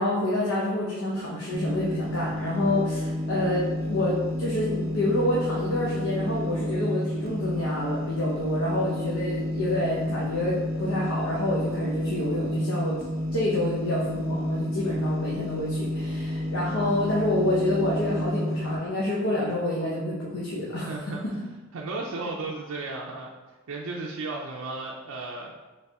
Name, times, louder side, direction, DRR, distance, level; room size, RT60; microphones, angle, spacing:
voice 1, 0.0-13.0 13.3-20.9, left 1 dB, 90° left, -6 dB, 0.8 m, -28 dB
sound 1, 1.5-18.8, left 1 dB, 45° right, 0.6 m, -30 dB
voice 2, 20.9-21.2 21.7-23.3 23.7-25.5, right 3 dB, 85° right, -2 dB, 0.5 m, -34 dB
4.1 x 3.4 x 3.4 m, 1.2 s
head